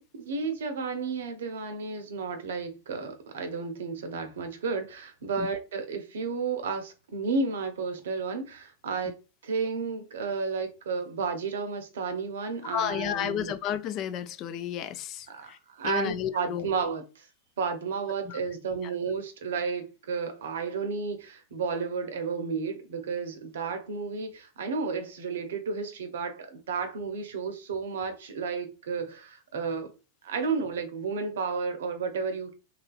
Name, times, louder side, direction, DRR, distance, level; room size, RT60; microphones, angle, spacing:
voice 1, 0.1-9.2 9.4-13.5 15.3-17.3 17.6-29.9 30.2-32.5, right 5 dB, 70° right, 0.7 m, -32 dB
voice 2, 12.7-15.6 15.8-16.7 18.2-18.4 18.8-18.9, left 10 dB, 40° left, 0.3 m, -32 dB
3.0 x 2.5 x 2.4 m
hypercardioid pair, 100°, 0 cm